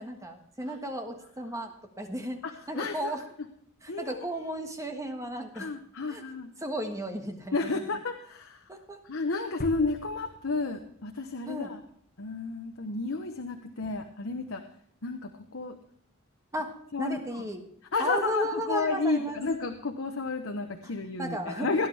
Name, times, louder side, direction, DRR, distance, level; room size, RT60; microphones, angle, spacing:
voice 1, 0.0-3.3 3.8-5.7 6.1-6.2 6.6-7.9 8.7-9.0 11.4-11.7 13.8-13.9 16.5-17.6 18.0-19.4 20.8-20.9 21.2-21.7, right 1 dB, 15° right, 4 dB, 1.5 m, -34 dB
voice 2, 2.8-3.1 3.9-4.2 5.5-6.5 7.5-8.6 9.0-11.8 12.2-14.6 15.0-15.8 16.9-17.2 17.9-21.9, left 3 dB, 70° left, 5 dB, 1.0 m, -31 dB
sound 1, 9.6-11.5, left 3 dB, 45° left, 0.6 m, -43 dB
17.5 x 11.0 x 3.4 m, 0.66 s
head